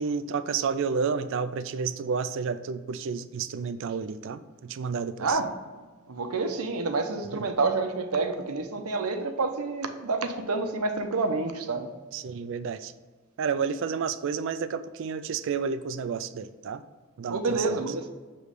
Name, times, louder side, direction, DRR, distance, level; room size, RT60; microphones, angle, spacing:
voice 1, 0.0-5.4 7.3-7.5 12.1-12.9 13.4-16.8 17.2-17.8, right 5 dB, 60° right, 13 dB, 0.3 m, -30 dB
voice 2, 5.2-5.5 6.1-11.9 17.3-18.1, right 3 dB, 85° right, 6 dB, 0.7 m, -28 dB
6.7 x 3.1 x 4.9 m, 1.4 s
head